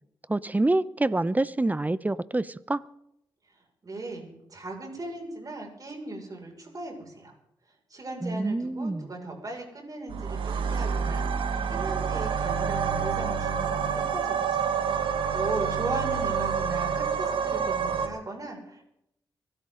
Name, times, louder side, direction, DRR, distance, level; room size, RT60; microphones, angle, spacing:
voice 1, 0.3-2.8 8.2-9.1, right 2 dB, 20° right, 18 dB, 0.7 m, -26 dB
voice 2, 3.8-7.3 7.9-14.7 15.0-18.8, right 2 dB, 45° right, 1 dB, 5.8 m, -38 dB
sound 1, 10.1-18.1, right 6 dB, 80° right, 1.4 m, -28 dB
24.5 x 12.5 x 3.9 m, 0.78 s
cardioid pair, 55°, 8 cm